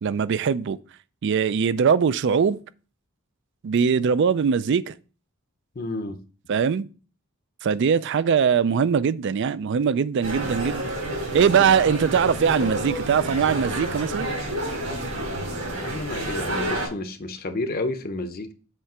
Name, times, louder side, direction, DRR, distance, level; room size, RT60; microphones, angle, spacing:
voice 1, 0.0-0.8 1.2-2.6 3.6-4.9 6.5-6.9 7.6-10.9 11.3-14.3, right 6 dB, 55° right, 0.4 m, -21 dB
voice 2, 5.8-6.2 15.5-18.5, left 2 dB, 45° left, 0.7 m, -31 dB
sound 1, 10.2-16.9, right 1 dB, 80° right, 3.5 m, -29 dB
7.4 x 3.3 x 6.0 m
head